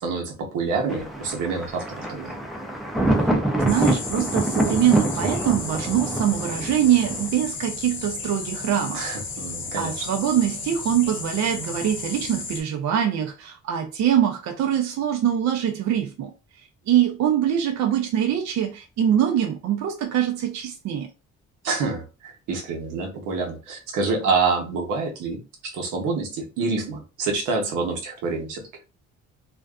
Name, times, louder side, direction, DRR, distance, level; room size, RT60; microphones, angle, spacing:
voice 1, 0.0-2.3 8.9-10.1 21.6-28.6, right 4 dB, 90° right, 0.8 m, -27 dB
Thunder, 0.9-7.3, right 1 dB, ahead, 0.5 m, -26 dB
voice 2, 3.6-9.0 9.8-16.3 16.9-21.1, right 10 dB, 65° right, 0.5 m, -23 dB
sound 1, 3.7-12.6, left 4 dB, 40° left, 0.8 m, -34 dB
2.5 x 2.2 x 2.3 m
cardioid pair, 90°, 30 cm